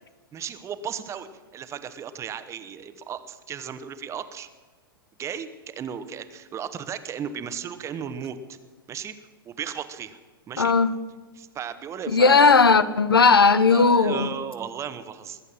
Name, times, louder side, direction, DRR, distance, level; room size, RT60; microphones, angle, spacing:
voice 1, 0.3-4.5 5.2-8.6 8.9-9.1 9.4-10.2 10.5-10.7 11.4-12.6 13.7-15.4, right 8 dB, 25° right, 12 dB, 1.1 m, -35 dB
voice 2, 10.6-10.9 12.1-14.3, left 4 dB, 85° left, 14 dB, 0.9 m, -17 dB
21.0 x 8.2 x 7.6 m, 1.4 s
figure-of-eight pair, 105°, 12 cm